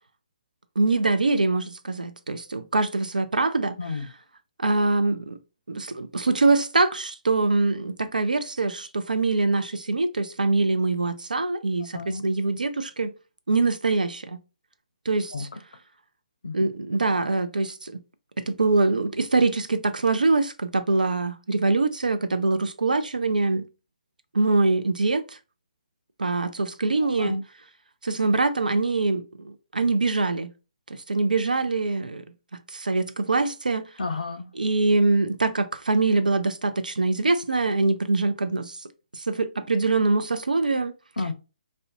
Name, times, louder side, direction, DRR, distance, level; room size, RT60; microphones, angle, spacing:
voice 1, 0.8-3.8 4.6-5.4 5.7-13.1 13.5-14.4 15.1-15.5 16.5-18.0 18.4-23.7 24.3-25.4 26.2-27.4 28.0-30.5 31.1-32.2 32.7-33.8 34.6-38.8 39.1-40.9, right 3 dB, 85° right, 0.4 m, -24 dB
voice 2, 34.0-34.5 41.2-41.3, left 3 dB, 75° left, 0.5 m, -30 dB
2.5 x 2.1 x 2.6 m
figure-of-eight pair, 140°, 4 cm